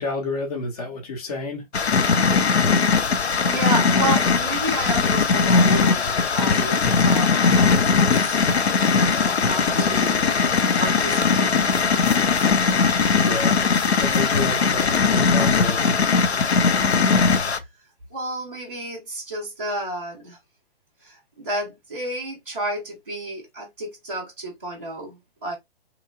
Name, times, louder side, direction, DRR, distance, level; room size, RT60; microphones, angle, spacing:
voice 1, 0.0-1.7 9.7-10.0 13.2-13.6 14.0-16.0, left 3 dB, 35° left, 0.9 m, -30 dB
sound 1, 1.7-17.6, left 5 dB, 75° left, 0.5 m, -19 dB
voice 2, 3.4-11.8 17.4-17.7 18.1-20.4 21.0-25.6, right 1 dB, 15° right, 0.4 m, -32 dB
2.9 x 2.4 x 2.3 m
figure-of-eight pair, 135°, 33 cm